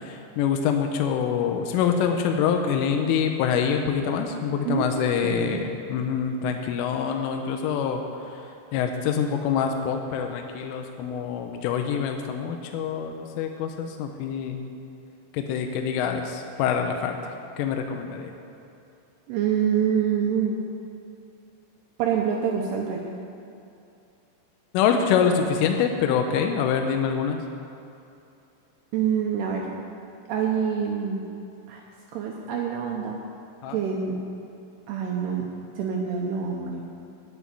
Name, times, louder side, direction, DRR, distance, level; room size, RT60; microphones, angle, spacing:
voice 1, 0.0-8.0 8.3-8.4 8.7-14.6 15.3-17.2 17.6-18.3 24.7-27.4 33.6-33.8, left 7 dB, 85° left, 4 dB, 3.3 m, -25 dB
voice 2, 5.2-5.6 19.3-20.6 22.0-23.1 28.9-29.7 30.3-31.2 31.7-31.8 32.1-33.2 33.7-34.2 34.9-35.5 35.8-37.0, right 7 dB, 75° right, 0 dB, 2.5 m, -26 dB
9.9 x 9.3 x 9.6 m, 2.7 s
omnidirectional pair, 5.6 m